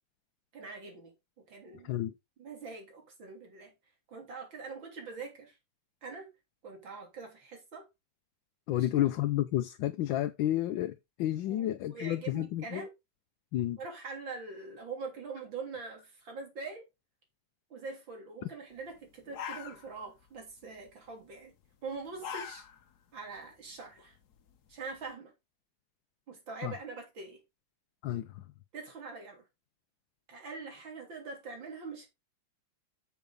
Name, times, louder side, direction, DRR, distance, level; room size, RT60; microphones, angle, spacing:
voice 1, 0.5-2.0 2.4-3.7 4.1-5.6 6.0-6.3 6.6-7.9 8.7-8.9 11.5-12.9 13.8-16.8 17.7-21.5 21.8-22.7 23.1-24.2 24.7-25.3 26.3-27.4 28.7-29.4 30.3-32.1, right 4 dB, 85° right, 3.9 m, -43 dB
voice 2, 8.7-12.8 13.5-13.8 26.6-26.7 28.0-28.3, left 13 dB, 85° left, 1.4 m, -31 dB
sound 1, 18.9-19.0 19.2-20.2 20.5-20.9 21.9-23.0 23.4-23.5 24.0-25.0, left 7 dB, 60° left, 1.5 m, -42 dB
8.3 x 7.1 x 3.9 m
omnidirectional pair, 2.0 m